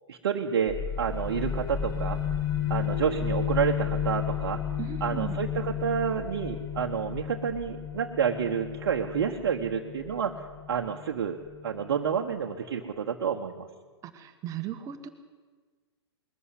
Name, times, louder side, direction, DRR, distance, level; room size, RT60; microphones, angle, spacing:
voice 1, 0.1-2.2 2.7-4.6 5.0-10.4 10.7-11.4 11.6-13.7, right 7 dB, 55° right, 1 dB, 1.4 m, -29 dB
sound 1, 0.7-12.1, left 8 dB, 20° left, 2.3 m, -33 dB
voice 2, 4.8-5.4 14.0-15.1, right 10 dB, 25° right, 9 dB, 1.6 m, -37 dB
21.0 x 14.0 x 9.7 m, 1.4 s
figure-of-eight pair, 110°, 14 cm